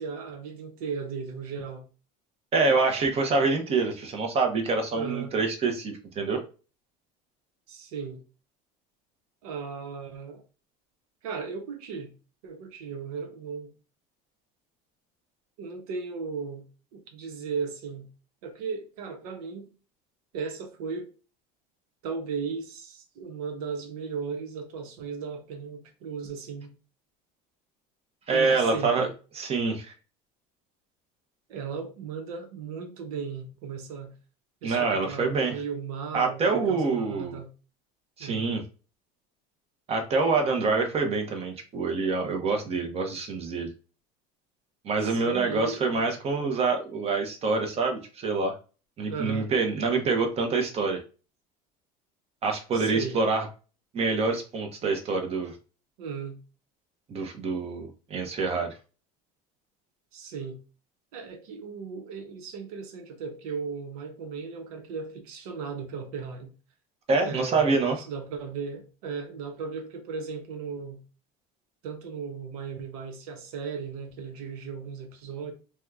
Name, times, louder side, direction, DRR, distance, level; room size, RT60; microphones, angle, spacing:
voice 1, 0.0-1.9 4.9-5.3 7.7-8.2 9.4-10.4 11.2-12.1 12.4-13.7 15.6-16.6 16.9-18.1 18.4-19.7 20.3-21.1 22.0-26.7 28.3-29.1 31.5-34.1 34.6-37.5 38.2-38.5 45.0-46.1 46.3-46.5 49.1-49.5 52.7-53.2 56.0-56.4 60.1-60.6 61.1-66.5 67.2-71.0 71.8-75.5, right 5 dB, 85° right, 0.9 m, -36 dB
voice 2, 2.5-6.4 28.3-29.1 29.3-29.9 34.6-35.6 36.1-37.4 38.2-38.6 39.9-43.7 44.8-48.5 49.0-51.0 52.4-53.5 53.9-55.5 57.1-58.8 67.1-68.0, right 4 dB, 35° right, 0.8 m, -26 dB
2.8 x 2.3 x 3.5 m
supercardioid pair, 120°, 18 cm